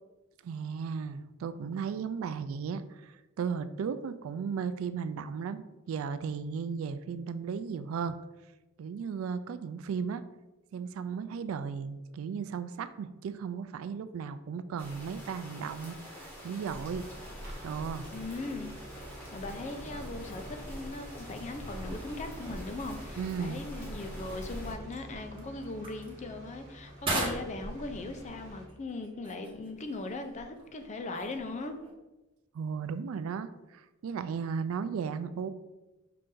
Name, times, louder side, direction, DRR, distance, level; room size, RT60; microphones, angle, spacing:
voice 1, 0.4-8.2 8.8-10.2 10.7-17.1 17.6-18.1 23.2-23.6 32.5-35.5, right 6 dB, 75° right, 13 dB, 0.3 m, -35 dB
sound 1, 14.8-24.7, equal, 10° left, 1.3 m, -44 dB
sound 2, 16.7-28.7, right 1 dB, 55° right, 1.4 m, -47 dB
voice 2, 18.1-18.8 19.3-31.7, left 2 dB, 35° left, 6 dB, 0.4 m, -39 dB
sound 3, 23.8-31.9, right 2 dB, 25° right, 1.0 m, -41 dB
5.6 x 2.5 x 3.7 m, 1.1 s
head